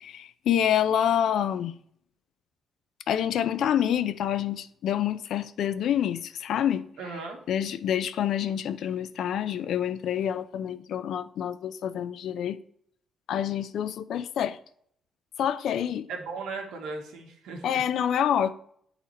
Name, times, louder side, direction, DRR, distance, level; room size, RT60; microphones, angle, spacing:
voice 1, 0.0-1.7 3.1-6.9 7.5-12.6 13.3-14.6 15.4-16.1 17.6-18.5, left 9 dB, 75° left, 0.5 m, -27 dB
voice 2, 7.0-7.4 16.1-17.8, right 4 dB, 90° right, 1.6 m, -37 dB
9.0 x 4.1 x 4.2 m
cardioid pair, 90°, 0 cm